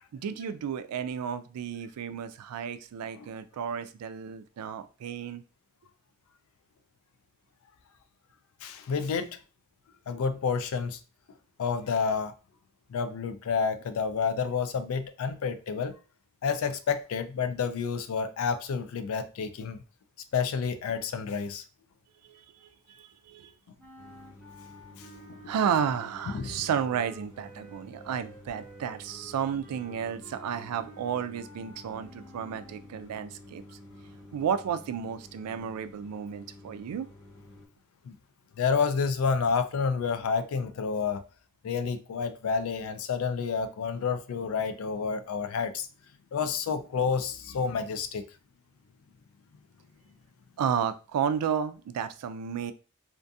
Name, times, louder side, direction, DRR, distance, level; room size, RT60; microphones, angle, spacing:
voice 1, 0.1-5.4 22.2-23.5 25.5-33.6 34.3-37.1 50.6-52.7, right 7 dB, 90° right, 0.3 m, -32 dB
voice 2, 8.6-9.4 10.1-11.0 11.6-12.3 12.9-16.0 16.4-19.8 20.3-21.6 25.0-25.1 26.3-26.6 38.0-38.2 38.6-41.2 41.6-45.9 46.3-48.2, left 5 dB, 65° left, 0.3 m, -29 dB
sound 1, 23.8-32.9, right 1 dB, 10° left, 0.6 m, -52 dB
sound 2, 24.0-37.7, left 2 dB, 50° left, 0.7 m, -51 dB
2.5 x 2.3 x 2.6 m
head